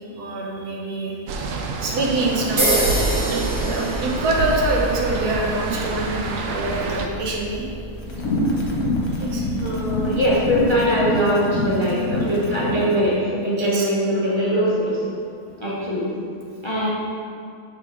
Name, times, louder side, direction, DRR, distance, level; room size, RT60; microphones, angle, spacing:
voice 1, 0.1-1.2 1.8-2.9 3.2-7.6 9.2-9.5 13.6-13.9, right 2 dB, 85° right, -2 dB, 1.5 m, -25 dB
sound 1, 1.3-7.1, right 3 dB, 70° right, 0.9 m, -27 dB
sound 2, 2.6-10.7, right 1 dB, 40° right, 1.7 m, -29 dB
sound 3, 8.1-12.9, left 1 dB, 70° left, 1.5 m, -25 dB
voice 2, 8.1-8.5 9.6-15.0 15.5-16.1 16.6-16.9, equal, 30° left, -6 dB, 0.6 m, -22 dB
5.9 x 3.7 x 4.8 m, 2.3 s
omnidirectional pair, 1.6 m